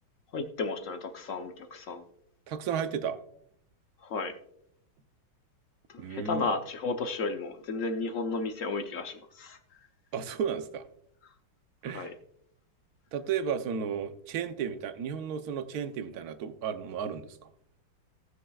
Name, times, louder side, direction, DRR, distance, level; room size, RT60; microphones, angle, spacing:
voice 1, 0.3-2.0 4.0-4.3 5.9-9.6 11.9-12.1, left 3 dB, 55° left, 6 dB, 0.9 m, -33 dB
voice 2, 2.5-3.2 6.0-6.4 10.1-10.8 11.8-12.1 13.1-17.4, right 7 dB, 60° right, 9 dB, 1.0 m, -33 dB
18.0 x 6.6 x 2.3 m, 0.70 s
omnidirectional pair, 2.2 m